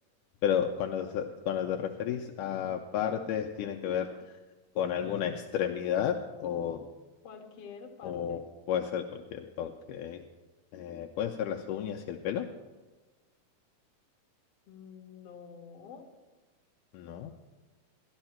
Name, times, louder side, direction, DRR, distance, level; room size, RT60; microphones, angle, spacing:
voice 1, 0.4-4.4 4.8-6.9 8.0-8.4 8.7-10.2 10.7-12.5 16.9-17.3, left 9 dB, 80° left, 2 dB, 2.1 m, -32 dB
voice 2, 7.2-8.4 14.7-16.1, left 6 dB, 55° left, 1 dB, 2.2 m, -48 dB
13.5 x 12.5 x 4.4 m, 1.2 s
omnidirectional pair, 3.9 m